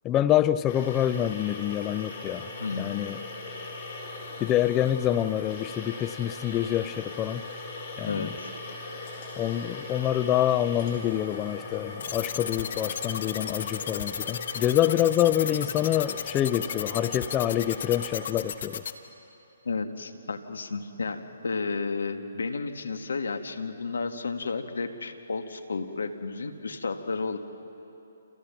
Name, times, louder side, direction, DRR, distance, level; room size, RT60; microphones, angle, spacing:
voice 1, 0.0-2.5 2.8-3.2 4.4-7.4 8.0-8.3 9.4-18.8, left 12 dB, 20° left, 14 dB, 0.6 m, -26 dB
sound 1, 0.7-18.3, left 2 dB, 40° left, 5.6 m, -39 dB
voice 2, 2.6-2.9 8.0-8.5 19.6-27.4, left 4 dB, 75° left, 7 dB, 1.7 m, -32 dB
sound 2, 12.0-18.9, left 8 dB, 55° left, 1.4 m, -34 dB
30.0 x 27.5 x 6.0 m, 2.9 s
figure-of-eight pair, 135°, 0 cm